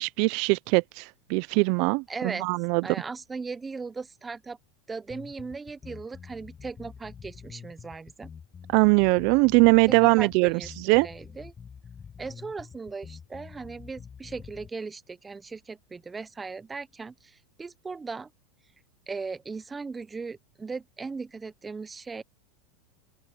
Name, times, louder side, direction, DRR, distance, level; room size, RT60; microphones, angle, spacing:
voice 1, 0.0-2.8 8.7-11.1, right 29 dB, 60° right, 0.6 m, -22 dB
voice 2, 2.1-2.5 2.8-4.6 4.9-8.3 9.9-11.5 12.2-18.3 19.1-22.2, right 4 dB, 15° right, 1.1 m, -38 dB
sound 1, 5.1-14.7, left 6 dB, 25° left, 5.3 m, -46 dB
open air
hypercardioid pair, 95°, 0 cm